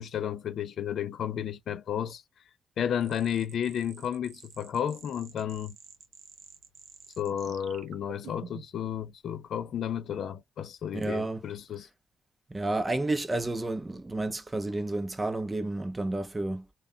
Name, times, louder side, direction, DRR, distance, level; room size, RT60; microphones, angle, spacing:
voice 1, 0.0-2.2 2.8-5.8 7.2-11.9, left 9 dB, 65° left, 0.4 m, -32 dB
sound 1, 3.0-8.8, right 8 dB, 80° right, 0.5 m, -50 dB
voice 2, 10.9-11.4 12.5-16.7, right 2 dB, 15° right, 0.6 m, -31 dB
2.2 x 2.2 x 3.6 m
cardioid pair, 115°, 0 cm